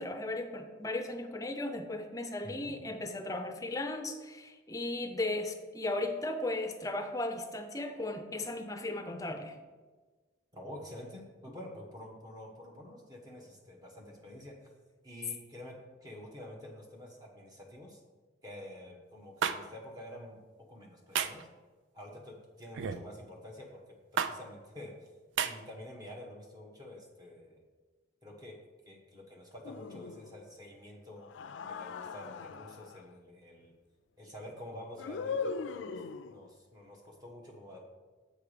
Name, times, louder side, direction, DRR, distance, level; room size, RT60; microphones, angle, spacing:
voice 1, 0.0-9.6, left 2 dB, 15° left, 6 dB, 0.5 m, -36 dB
voice 2, 2.4-2.8 10.5-14.7 15.0-15.7 16.0-18.0 18.4-20.4 20.7-21.5 21.9-23.8 24.1-25.1 25.4-27.6 28.2-28.5 28.8-31.3 31.7-33.7 34.2-36.0 36.3-37.8, left 1 dB, 20° right, 0 dB, 1.2 m, -48 dB
sound 1, 19.4-19.6 21.1-21.4 22.7-23.0 24.2-24.3 25.4-25.5, right 7 dB, 75° right, 0.4 m, -30 dB
sound 2, 29.6-30.5 31.2-33.0 35.0-36.5, left 5 dB, 75° left, 0.3 m, -39 dB
7.8 x 4.7 x 5.0 m, 1.3 s
head